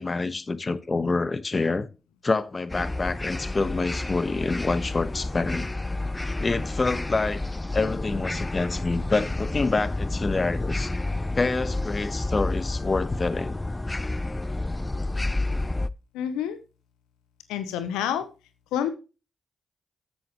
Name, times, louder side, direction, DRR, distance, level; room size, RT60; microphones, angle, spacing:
voice 1, 0.0-1.9 2.2-5.7 6.4-7.4 7.7-10.9 11.3-13.6, left 3 dB, 40° left, 1.2 m, -27 dB
sound 1, 2.7-15.9, left 2 dB, 20° left, 0.6 m, -30 dB
voice 2, 16.1-16.6 17.5-18.3 18.7-18.9, left 9 dB, 90° left, 0.8 m, -28 dB
13.5 x 8.0 x 3.1 m
hypercardioid pair, 40°, 0 cm